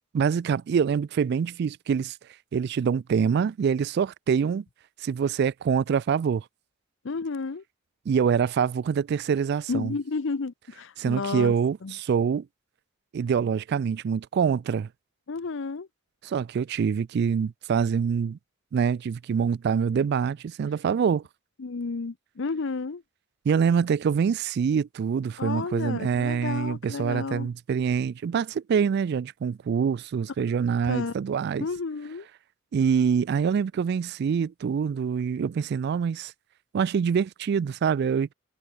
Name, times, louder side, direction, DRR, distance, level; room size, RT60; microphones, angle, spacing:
voice 1, 0.1-2.2 2.5-4.6 5.0-6.4 8.1-9.9 11.0-12.5 13.1-14.9 16.2-18.4 18.7-21.2 23.5-31.7 32.7-36.3 36.7-38.3, right 6 dB, 55° right, 0.3 m, -25 dB
voice 2, 7.0-7.6 9.7-11.5 11.8-11.9 15.3-15.9 21.6-23.0 25.4-27.5 30.8-31.1 31.6-32.3, left 4 dB, 65° left, 0.6 m, -31 dB
head